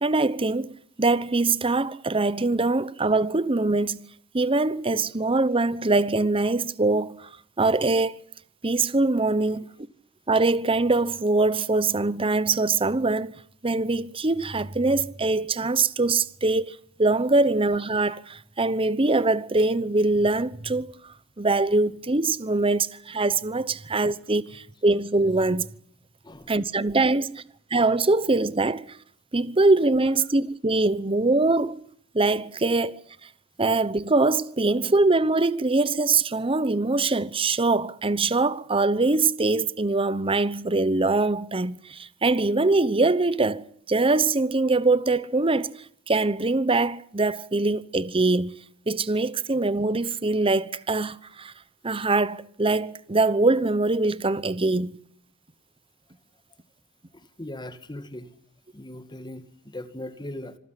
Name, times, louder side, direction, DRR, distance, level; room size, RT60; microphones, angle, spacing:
voice 1, 0.0-4.1 4.3-7.3 7.6-8.2 8.6-9.7 10.3-13.3 13.6-20.9 21.4-25.7 26.5-27.4 27.7-29.0 29.3-31.8 32.1-33.0 33.6-45.7 46.1-48.6 48.9-51.5 51.8-55.0, right 3 dB, 25° right, 0.9 m, -23 dB
voice 2, 57.1-58.3 58.7-60.6, left 1 dB, 20° left, 1.8 m, -39 dB
26.0 x 15.0 x 9.8 m
head